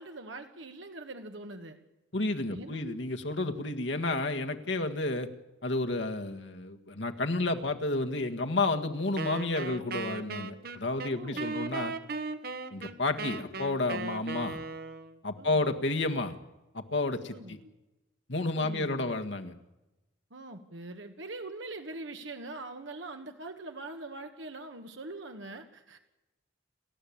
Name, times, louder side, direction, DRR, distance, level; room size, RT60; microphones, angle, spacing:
voice 1, 0.0-1.8 2.5-2.9 11.0-11.5 15.3-15.6 17.3-17.6 18.5-19.1 20.3-26.0, right 2 dB, 75° right, 6 dB, 1.7 m, -43 dB
voice 2, 2.1-5.3 5.6-11.9 12.7-14.6 15.2-16.3 16.7-17.6 18.3-19.5, left 2 dB, 70° left, 5 dB, 1.8 m, -31 dB
Wind instrument woodwind instrument, 9.2-15.2, right 3 dB, 50° right, 1.3 m, -37 dB
29.5 x 13.5 x 8.7 m, 1.0 s
head